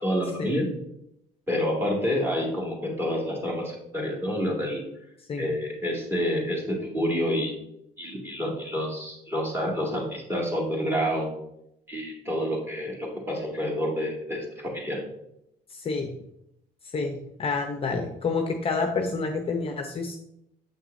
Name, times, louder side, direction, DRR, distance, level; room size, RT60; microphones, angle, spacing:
voice 1, 0.0-0.7 1.5-4.8 5.4-7.5 8.0-11.3 11.9-15.0, equal, 15° right, -2 dB, 2.2 m, -28 dB
voice 2, 15.7-16.1 16.9-20.2, left 4 dB, 35° left, 4 dB, 0.7 m, -28 dB
7.2 x 6.0 x 2.6 m, 0.78 s
cardioid pair, 110°, 17 cm